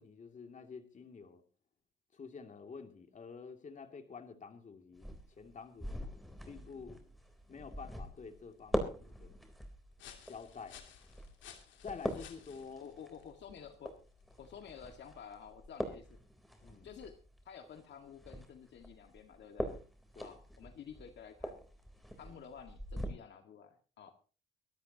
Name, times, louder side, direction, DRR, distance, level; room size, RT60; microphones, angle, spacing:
voice 1, 0.0-1.4 2.1-6.1 6.5-7.1 7.5-9.4 10.3-10.8 11.8-12.8 16.6-16.9 20.1-20.3 22.2-22.4, left 5 dB, 40° left, 5 dB, 2.6 m, -49 dB
sound 1, 4.9-23.1, equal, ahead, 3.6 m, -44 dB
sound 2, 7.6-15.0, left 9 dB, 90° left, 2.8 m, -58 dB
voice 2, 12.8-14.0 14.4-16.2 16.8-17.2 17.5-19.7 20.2-21.6 22.2-24.1, left 7 dB, 70° left, 5 dB, 1.9 m, -51 dB
23.5 x 12.5 x 2.9 m, 0.36 s
cardioid pair, 105°, 19 cm